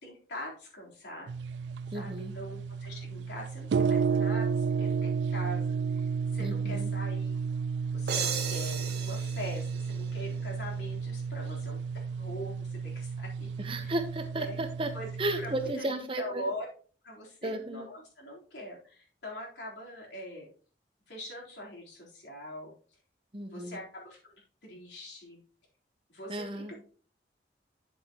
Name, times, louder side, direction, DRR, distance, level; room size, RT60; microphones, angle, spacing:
voice 1, 0.0-1.3 1.9-7.4 7.9-13.5 13.8-13.9 14.3-14.6 14.9-15.1 15.4-16.7 17.0-20.5 21.1-22.7 23.5-25.4 26.1-26.7, equal, 90° left, -3 dB, 3.9 m, -43 dB
sound 1, 1.3-15.7, right 5 dB, 90° right, 0.3 m, -32 dB
voice 2, 1.9-2.3 6.4-6.9 13.6-14.9 15.2-16.5 17.4-17.9 23.3-23.8 26.3-26.7, right 1 dB, 30° right, 8 dB, 0.9 m, -34 dB
sound 2, 8.1-10.7, right 7 dB, 70° right, 1.5 m, -36 dB
9.6 x 7.5 x 3.0 m, 0.42 s
head